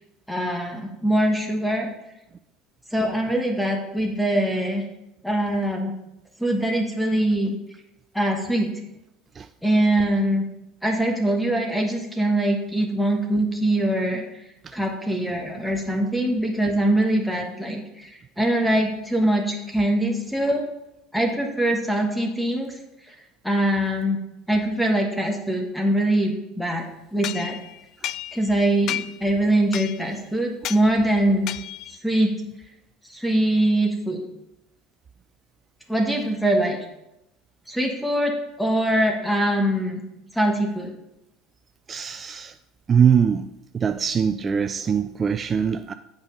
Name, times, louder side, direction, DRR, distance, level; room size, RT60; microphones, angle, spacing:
voice 1, 0.3-1.9 2.9-4.9 5.2-5.9 6.4-7.6 8.1-8.7 9.6-10.5 10.8-14.2 14.7-20.7 21.1-22.8 23.1-23.2 23.4-24.2 24.5-26.9 27.1-27.6 28.3-31.5 31.9-32.3 33.0-34.2 35.9-36.8 37.7-40.0 40.3-40.9, right 1 dB, ahead, 1.4 m, -23 dB
sound 1, 27.2-28.6 28.9-29.3 29.7-30.2 30.6-30.9 31.5-32.0, left 13 dB, 55° left, 0.3 m, -32 dB
voice 2, 41.9-42.6 42.9-45.9, right 7 dB, 35° right, 0.3 m, -22 dB
7.2 x 5.3 x 5.4 m
hypercardioid pair, 85°, 0 cm